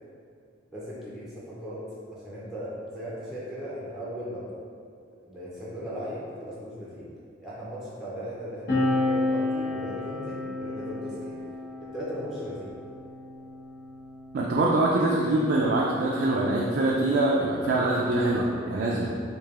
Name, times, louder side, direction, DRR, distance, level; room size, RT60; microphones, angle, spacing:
voice 1, 0.7-1.8 2.1-4.5 5.2-7.1 7.4-11.4 11.8-12.7, equal, ahead, -8 dB, 0.5 m, -37 dB
sound 1, 8.7-15.6 16.6-18.4, left 2 dB, 60° left, 0.9 m, -32 dB
voice 2, 14.3-19.1, right 2 dB, 55° right, -4 dB, 0.4 m, -24 dB
4.7 x 2.6 x 2.4 m, 2.4 s
head